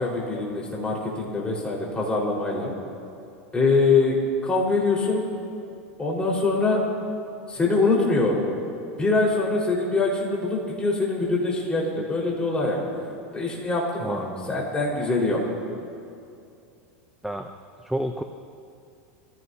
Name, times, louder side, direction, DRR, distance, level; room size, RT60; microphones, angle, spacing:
voice 1, 0.0-2.7 3.5-5.2 6.0-6.8 7.5-8.4 9.0-12.8 13.3-15.4, left 3 dB, 15° left, -4 dB, 4.7 m, -23 dB
voice 2, 14.0-14.7 17.2-17.5 17.8-18.2, right 1 dB, 5° right, 5 dB, 0.6 m, -31 dB
25.0 x 16.0 x 2.8 m, 2.5 s
supercardioid pair, 120°, 7 cm